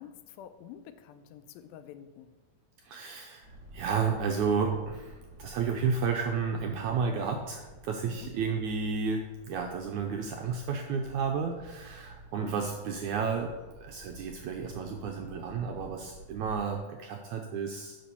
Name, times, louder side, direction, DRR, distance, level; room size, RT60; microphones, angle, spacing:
voice 1, 0.0-2.4 8.1-8.3, left 9 dB, 85° left, 2.3 m, -48 dB
voice 2, 2.8-18.0, right 5 dB, 80° right, 1.7 m, -32 dB
sound 1, 3.4-16.8, right 2 dB, 30° right, 1.4 m, -51 dB
7.4 x 5.9 x 6.9 m
omnidirectional pair, 4.2 m